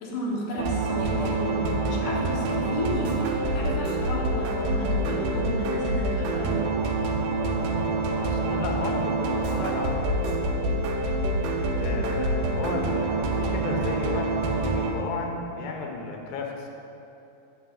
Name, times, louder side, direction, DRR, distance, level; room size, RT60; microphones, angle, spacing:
voice 1, 0.0-6.6, left 1 dB, 65° left, -4 dB, 2.7 m, -33 dB
sound 1, 0.6-14.9, right 2 dB, 75° right, 2.1 m, -26 dB
voice 2, 7.4-10.5 11.8-16.7, left 4 dB, 80° left, 1 dB, 2.7 m, -34 dB
8.6 x 4.1 x 7.1 m, 2.9 s
omnidirectional pair, 4.2 m